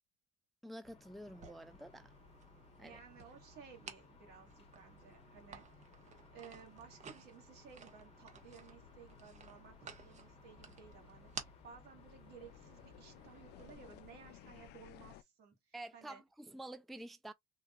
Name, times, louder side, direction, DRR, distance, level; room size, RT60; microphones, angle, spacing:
voice 1, 0.6-2.1 2.8-3.0 15.7-17.3, right 1 dB, ahead, 0.3 m, -49 dB
sound 1, 0.8-14.7, left 4 dB, 35° left, 0.9 m, -63 dB
sound 2, 1.3-13.7, right 5 dB, 45° right, 1.0 m, -55 dB
voice 2, 2.8-6.0 6.3-16.2, right 6 dB, 75° right, 1.8 m, -57 dB
sound 3, 8.2-15.2, left 13 dB, 80° left, 0.5 m, -60 dB
3.9 x 2.5 x 2.3 m
cardioid pair, 110°, 17 cm